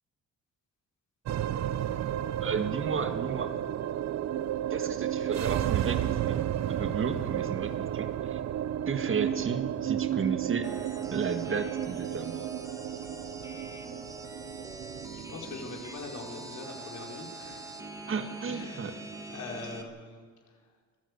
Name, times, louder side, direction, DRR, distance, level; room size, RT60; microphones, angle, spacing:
sound 1, 1.3-19.8, right 11 dB, 60° right, 0.8 m, -33 dB
voice 1, 2.4-3.5 4.7-8.4 8.9-10.7 11.1-12.6 18.1-18.9, right 5 dB, 45° right, 8 dB, 1.8 m, -33 dB
sound 2, 10.6-19.8, right 2 dB, 10° right, 2.0 m, -44 dB
voice 2, 15.1-17.7 18.5-18.9 19.3-20.2, left 3 dB, 70° left, 0 dB, 4.9 m, -42 dB
25.0 x 14.0 x 8.3 m, 1.6 s
cardioid pair, 90°, 30 cm